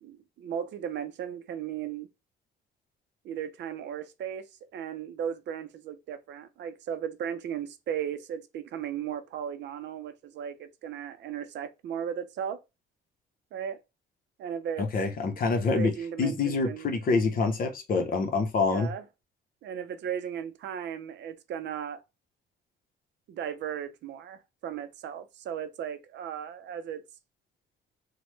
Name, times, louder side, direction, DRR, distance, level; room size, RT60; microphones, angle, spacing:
voice 1, 0.0-2.1 3.2-4.4 4.7-12.6 13.5-13.8 14.4-14.9 15.7-16.9 18.7-19.0 19.6-22.0 23.3-27.0, right 8 dB, 65° right, 0.5 m, -36 dB
voice 2, 14.8-18.9, left 4 dB, 50° left, 0.7 m, -26 dB
3.0 x 2.1 x 3.1 m
cardioid pair, 110°, 19 cm